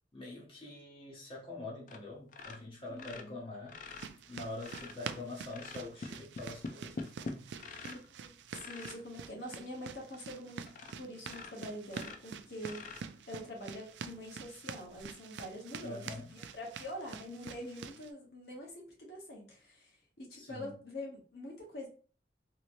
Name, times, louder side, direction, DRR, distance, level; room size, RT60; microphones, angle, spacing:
voice 1, 0.1-3.8 4.3-7.5 15.8-16.3 20.3-20.7, left 2 dB, 30° left, 0.8 m, -45 dB
sound 1, 1.9-2.0 2.3-5.0 5.5-8.1 8.5-9.0 9.6-9.7 10.1-10.2 10.7-11.0 11.2-13.4 14.9-15.0, left 3 dB, 45° left, 0.4 m, -45 dB
voice 2, 2.9-3.4 7.8-10.6 11.0-12.9 13.3-21.9, left 1 dB, 60° left, 1.0 m, -45 dB
sound 2, 3.9-18.1, right 6 dB, 75° right, 0.3 m, -47 dB
3.0 x 2.8 x 2.6 m
head